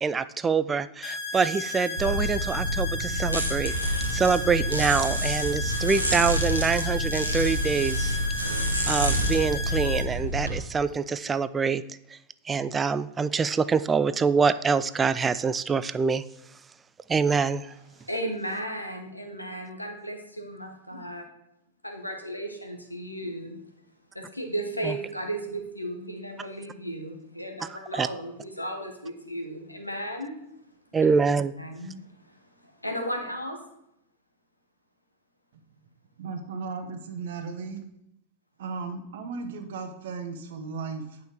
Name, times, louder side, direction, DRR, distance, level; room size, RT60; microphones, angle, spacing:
voice 1, 0.0-11.8 12.1-12.2 12.5-16.2 17.1-17.7 24.8-25.0 27.9-28.1 30.9-31.5, right 5 dB, 20° right, 15 dB, 0.3 m, -25 dB
sound 1, 1.0-10.0, left 3 dB, 40° left, 1.3 m, -34 dB
sound 2, 2.0-10.5, equal, 85° right, 1.3 m, -28 dB
voice 2, 18.0-21.2 21.8-23.6 24.1-30.3 31.6-32.0 32.6-33.6, right 1 dB, 90° left, 4 dB, 1.3 m, -35 dB
voice 3, 36.2-37.8 38.6-41.2, right 4 dB, 60° right, 7 dB, 1.1 m, -36 dB
9.0 x 5.5 x 4.7 m, 0.81 s
figure-of-eight pair, 90°, 0 cm